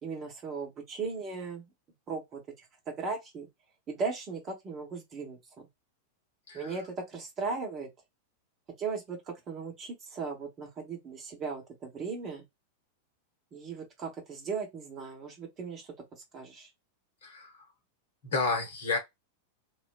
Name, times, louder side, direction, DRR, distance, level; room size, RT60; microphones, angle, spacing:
voice 1, 0.0-1.7 2.1-2.4 2.9-3.5 3.9-5.7 6.5-7.9 8.8-12.4 13.5-16.7, right 4 dB, 25° right, 1.1 m, -37 dB
voice 2, 17.2-17.7 18.2-19.0, left 4 dB, 60° left, 0.9 m, -31 dB
2.4 x 2.3 x 2.2 m
figure-of-eight pair, 90°, 0 cm